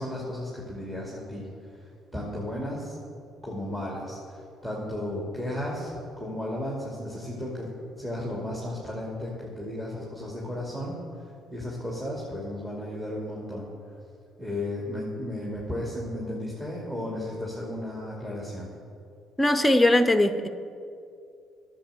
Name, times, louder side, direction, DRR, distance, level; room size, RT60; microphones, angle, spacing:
voice 1, 0.0-3.0 3.4-7.7 8.0-11.0 11.5-13.7 14.4-18.7, left 1 dB, 15° right, -4 dB, 2.5 m, -34 dB
voice 2, 19.4-20.5, left 1 dB, 10° left, 10 dB, 0.7 m, -20 dB
10.0 x 7.3 x 6.8 m, 2.5 s
hypercardioid pair, 55°, 0 cm